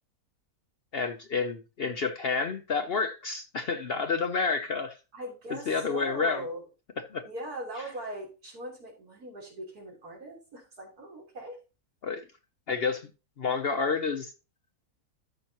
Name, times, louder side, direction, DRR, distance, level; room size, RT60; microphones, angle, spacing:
voice 1, 0.9-5.0 5.7-6.4 7.1-7.2 12.0-12.2 12.7-13.1 13.4-14.3, left 4 dB, 55° left, 0.7 m, -29 dB
voice 2, 5.1-6.6 7.2-11.6, right 1 dB, 80° right, 4.0 m, -40 dB
13.0 x 5.6 x 2.9 m
omnidirectional pair, 1.6 m